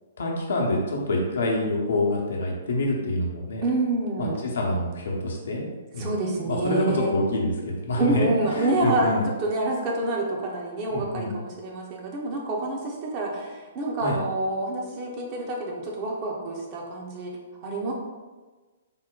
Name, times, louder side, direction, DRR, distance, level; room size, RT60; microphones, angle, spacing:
voice 1, 0.2-3.6 4.2-5.6 5.9-6.2 6.5-9.3 10.9-11.4 14.0-14.2, left 1 dB, 60° left, -1 dB, 0.7 m, -26 dB
voice 2, 3.6-4.4 6.0-7.1 8.0-17.4 17.6-17.9, right 2 dB, 30° right, -1 dB, 0.7 m, -27 dB
3.7 x 2.1 x 3.8 m, 1.3 s
figure-of-eight pair, 120°, 0 cm